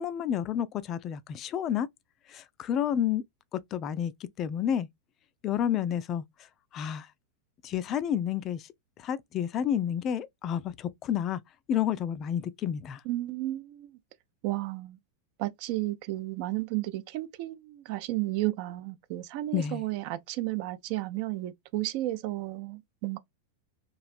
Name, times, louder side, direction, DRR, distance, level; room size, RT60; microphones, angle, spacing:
voice 1, 0.0-1.9 2.3-3.2 3.5-4.1 4.4-4.9 5.4-6.2 6.7-7.1 7.6-8.6 9.0-11.4 11.7-13.0 19.5-19.8, left 9 dB, 30° left, 0.3 m, -30 dB
voice 2, 13.1-13.9 14.4-15.0 15.4-23.2, right 17 dB, 45° right, 0.3 m, -33 dB
3.1 x 2.4 x 2.4 m
figure-of-eight pair, 90°, 0 cm